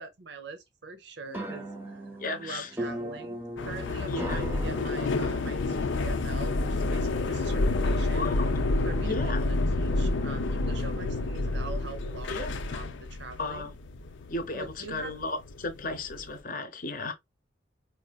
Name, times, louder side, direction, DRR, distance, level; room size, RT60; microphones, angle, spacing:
voice 1, 0.0-8.3 8.9-9.3 9.8-13.7 14.5-15.2, right 3 dB, 65° right, 0.7 m, -43 dB
sound 1, 1.3-6.5, right 1 dB, 10° right, 0.6 m, -39 dB
voice 2, 2.2-2.7 4.1-4.4 8.1-8.5 9.0-9.4 12.3-12.6 13.4-13.7 14.3-17.1, left 2 dB, 45° left, 0.8 m, -35 dB
sound 2, 3.6-16.4, left 2 dB, 80° left, 0.6 m, -29 dB
4.8 x 2.5 x 2.3 m
head